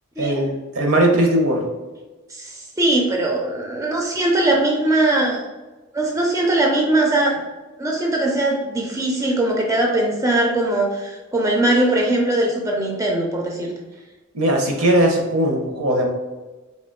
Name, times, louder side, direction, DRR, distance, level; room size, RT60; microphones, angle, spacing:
voice 1, 0.2-1.6 14.3-16.0, right 1 dB, 75° right, 2 dB, 0.8 m, -19 dB
voice 2, 2.3-5.5 5.9-7.4 7.8-13.7, right 1 dB, 15° right, 0 dB, 0.4 m, -20 dB
3.8 x 3.6 x 2.3 m, 1.2 s
head